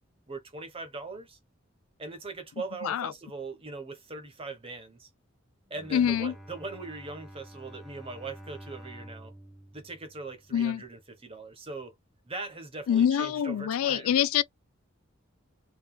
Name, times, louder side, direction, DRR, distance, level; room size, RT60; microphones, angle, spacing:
voice 1, 0.3-1.4 2.0-5.1 5.7-9.3 9.7-11.9 12.3-14.2, right 3 dB, 25° right, 1.1 m, -40 dB
voice 2, 2.8-3.1 5.9-6.3 10.5-10.8 12.9-14.4, left 9 dB, 85° left, 0.3 m, -25 dB
Bowed string instrument, 5.6-11.0, right 1 dB, ahead, 0.7 m, -49 dB
4.0 x 2.7 x 2.2 m
head